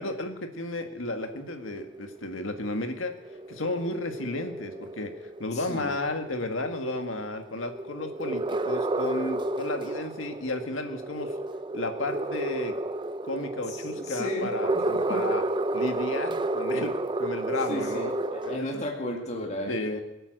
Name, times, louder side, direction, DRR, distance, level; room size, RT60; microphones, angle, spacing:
voice 1, 0.0-3.1 3.5-5.1 5.4-11.3 11.7-12.8 13.2-15.4 15.7-18.8 19.7-20.0, left 2 dB, 75° left, 6 dB, 1.7 m, -33 dB
sound 1, 1.2-18.6, right 2 dB, 25° right, 0.5 m, -32 dB
voice 2, 5.5-5.9 13.7-14.8 15.1-15.3 17.7-20.0, left 1 dB, 35° left, 0 dB, 2.2 m, -34 dB
22.0 x 8.9 x 6.5 m, 0.97 s
head